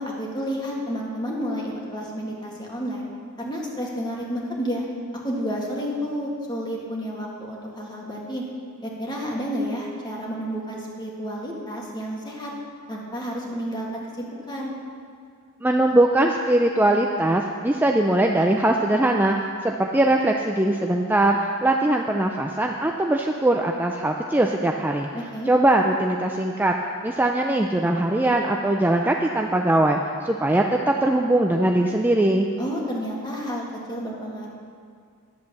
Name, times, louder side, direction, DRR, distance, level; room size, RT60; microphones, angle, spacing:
voice 1, 0.0-3.0 3.4-4.8 5.2-8.4 8.8-12.5 12.9-14.7 25.1-25.5 32.6-34.5, equal, 20° left, -3 dB, 2.0 m, -30 dB
voice 2, 15.6-26.8 27.0-32.5, right 1 dB, 10° right, 2 dB, 0.4 m, -21 dB
11.0 x 7.9 x 6.8 m, 2.2 s
head